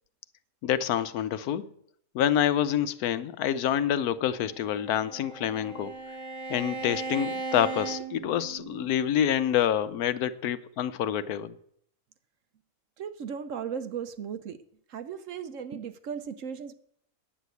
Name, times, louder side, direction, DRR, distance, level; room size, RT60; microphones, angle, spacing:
voice 1, 0.6-1.7 2.1-5.9 6.5-11.5, left 10 dB, 75° left, 1.1 m, -27 dB
Bowed string instrument, 4.5-8.9, right 3 dB, 85° right, 1.8 m, -37 dB
voice 2, 13.0-14.6 14.9-16.7, right 7 dB, 65° right, 1.0 m, -36 dB
9.8 x 8.0 x 8.2 m
omnidirectional pair, 1.6 m